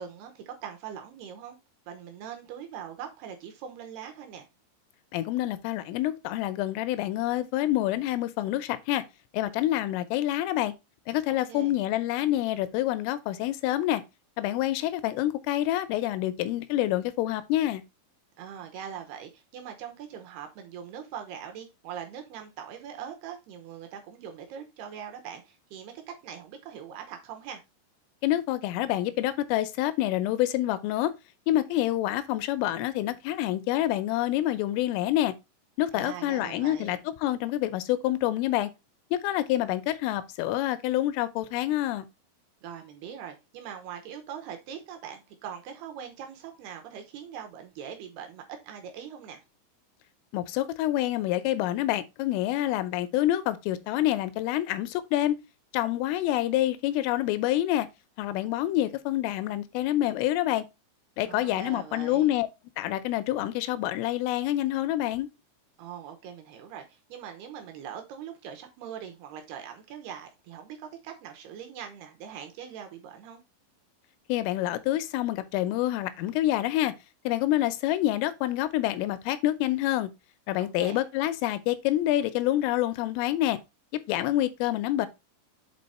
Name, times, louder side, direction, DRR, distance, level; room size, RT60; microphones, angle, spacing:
voice 1, 0.0-1.6 1.9-4.5 11.3-11.7 18.4-27.6 35.9-37.0 42.6-49.4 61.2-62.3 65.8-73.4 80.6-81.0, right 8 dB, 75° right, 2.4 m, -42 dB
voice 2, 5.1-9.0 9.3-10.7 11.1-14.0 14.4-17.8 28.2-31.1 31.5-35.3 35.8-38.7 39.1-42.1 50.3-55.4 55.7-57.9 58.2-60.7 61.2-62.5 62.8-65.3 74.3-76.9 77.2-80.1 80.5-83.6 84.1-85.1, left 14 dB, 85° left, 3.2 m, -27 dB
7.8 x 4.0 x 4.2 m
omnidirectional pair, 5.8 m